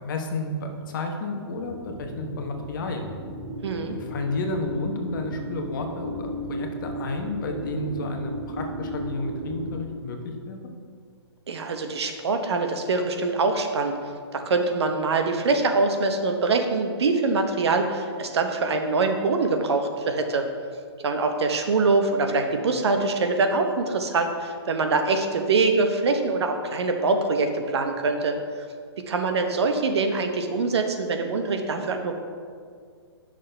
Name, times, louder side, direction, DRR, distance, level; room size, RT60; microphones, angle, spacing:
voice 1, 0.0-3.1 3.9-10.6, left 2 dB, 50° left, 3 dB, 1.1 m, -31 dB
sound 1, 1.6-9.8, right 1 dB, 15° right, 1.9 m, -35 dB
voice 2, 3.6-3.9 11.5-20.4 21.0-28.3 29.1-32.1, right 3 dB, 70° right, 5 dB, 1.0 m, -24 dB
9.9 x 6.4 x 3.4 m, 2.1 s
hypercardioid pair, 155°, 14 cm